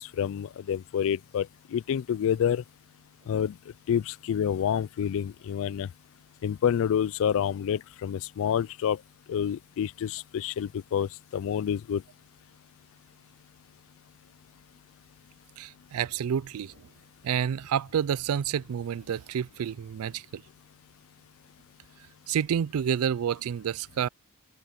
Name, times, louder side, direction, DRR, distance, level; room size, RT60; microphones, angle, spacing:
voice 1, 0.0-2.6 3.3-3.6 3.9-5.9 6.4-9.0 9.3-12.0, left 8 dB, 65° left, 0.3 m, -28 dB
voice 2, 15.6-16.9 17.2-20.4 22.3-24.1, right 8 dB, 70° right, 0.4 m, -29 dB
open air
head